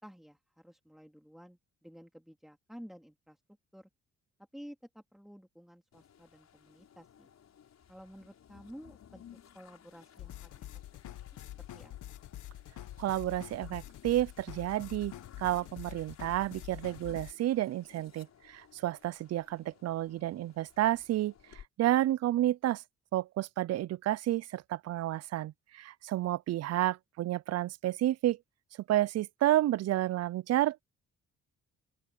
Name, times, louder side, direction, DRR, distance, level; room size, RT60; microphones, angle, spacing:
voice 1, 0.0-3.4 3.7-3.9 4.5-7.3 7.9-9.2 9.5-10.7 11.0-11.2 11.6-12.2, equal, ahead, 2.4 m, -52 dB
sound 1, 5.9-21.7, left 9 dB, 60° left, 5.1 m, -59 dB
sound 2, 10.2-17.3, left 13 dB, 75° left, 1.4 m, -46 dB
voice 2, 13.0-15.1 15.4-22.8 23.1-28.4 28.9-30.8, right 14 dB, 55° right, 0.5 m, -30 dB
open air
cardioid pair, 90°, 30 cm